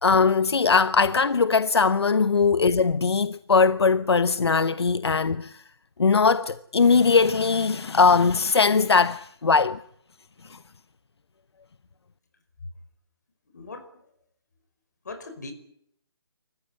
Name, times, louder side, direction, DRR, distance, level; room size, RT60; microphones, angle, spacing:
voice 1, 0.0-5.5 6.0-9.8, left 5 dB, 75° left, 1.0 m, -20 dB
voice 2, 13.5-14.0 15.0-15.5, left 3 dB, 40° left, 5.2 m, -40 dB
28.0 x 15.0 x 9.9 m
hypercardioid pair, 175°, 14 cm